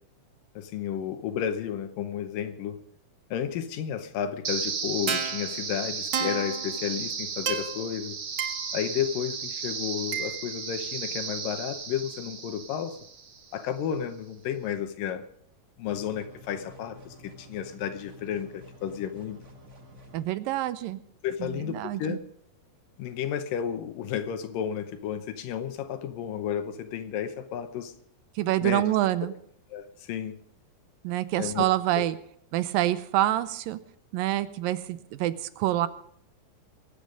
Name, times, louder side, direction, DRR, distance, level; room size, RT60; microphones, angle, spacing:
voice 1, 0.6-2.8 3.3-8.2 8.7-13.0 13.5-15.2 15.8-19.4 21.2-22.2 23.0-27.9 28.6-28.8 29.7-30.3 31.4-31.7, left 9 dB, 75° left, 10 dB, 2.5 m, -32 dB
sound 1, 4.4-13.5, right 6 dB, 50° right, 1.7 m, -33 dB
sound 2, 15.9-20.2, left 1 dB, 30° right, 1.6 m, -50 dB
voice 2, 20.1-21.0 21.4-22.2 28.4-29.3 31.0-32.2 32.5-33.8 34.1-35.9, right 14 dB, 80° right, 15 dB, 2.4 m, -27 dB
23.0 x 8.8 x 5.1 m, 0.68 s
omnidirectional pair, 4.2 m